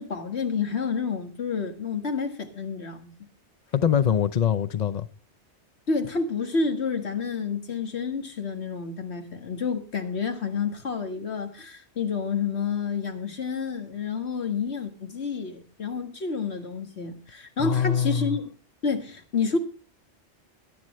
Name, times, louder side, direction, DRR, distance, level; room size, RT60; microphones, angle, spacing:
voice 1, 0.0-3.1 5.9-18.5 18.8-19.6, left 5 dB, 70° left, 1.9 m, -29 dB
voice 2, 3.7-5.1 17.6-18.4, left 9 dB, 45° left, 0.7 m, -23 dB
18.0 x 11.0 x 3.1 m
omnidirectional pair, 1.2 m